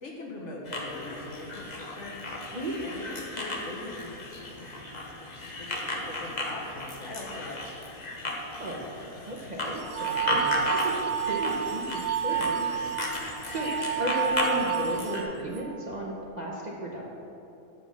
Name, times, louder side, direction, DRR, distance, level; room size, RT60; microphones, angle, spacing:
voice 1, 0.0-2.5 2.8-4.1 5.3-7.8, left 2 dB, 55° left, -1 dB, 1.3 m, -41 dB
sound 1, 0.7-15.2, left 2 dB, 35° left, 1.0 m, -35 dB
voice 2, 8.6-8.9 9.3-10.2 10.7-12.9 13.5-13.7 14.0-17.0, right 1 dB, 35° right, -3 dB, 0.8 m, -34 dB
sound 2, 9.8-15.6, right 8 dB, 85° right, 1.1 m, -30 dB
7.3 x 6.1 x 6.1 m, 3.0 s
omnidirectional pair, 1.5 m